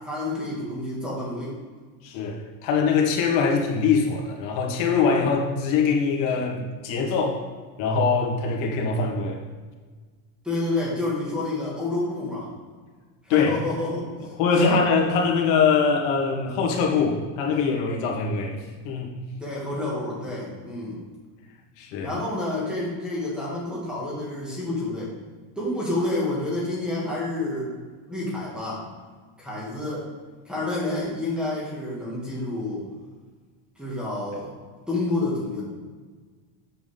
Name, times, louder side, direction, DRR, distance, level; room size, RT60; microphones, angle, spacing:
voice 1, 0.0-1.5 10.4-12.5 13.2-14.8 19.4-21.0 22.0-25.1 25.6-27.8 28.1-28.9 29.4-30.1 30.5-32.8 33.8-34.5 34.9-35.6, left 2 dB, ahead, -6 dB, 2.0 m, -29 dB
voice 2, 2.0-7.4 7.8-9.4 13.3-13.6 14.4-19.1 21.8-22.1, left 5 dB, 70° left, 0 dB, 1.8 m, -23 dB
7.7 x 7.4 x 3.8 m, 1.4 s
cardioid pair, 175°, 47 cm